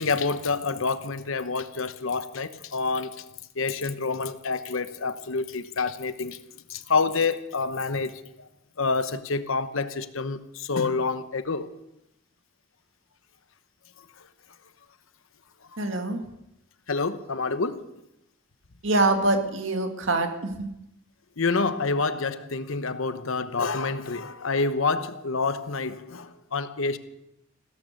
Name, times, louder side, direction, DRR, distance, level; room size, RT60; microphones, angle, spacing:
voice 1, 0.0-3.2 3.6-6.4 6.7-8.1 8.8-11.7 16.9-17.9 21.4-27.0, left 4 dB, 70° left, 12 dB, 1.0 m, -27 dB
voice 2, 15.8-16.2 18.8-20.7, right 2 dB, 60° right, 6 dB, 1.9 m, -24 dB
16.5 x 13.5 x 6.6 m, 0.84 s
head